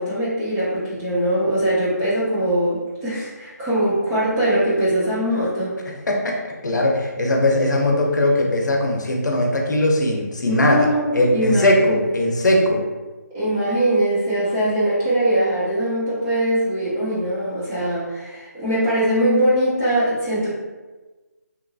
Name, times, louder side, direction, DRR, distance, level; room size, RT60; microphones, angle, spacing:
voice 1, 0.0-5.8 10.4-12.1 13.3-20.5, right 1 dB, 10° right, -11 dB, 0.4 m, -21 dB
voice 2, 5.9-10.9 11.1-12.8, left 1 dB, 85° left, 0 dB, 0.6 m, -19 dB
2.8 x 2.5 x 2.3 m, 1.2 s
hypercardioid pair, 170°, 9 cm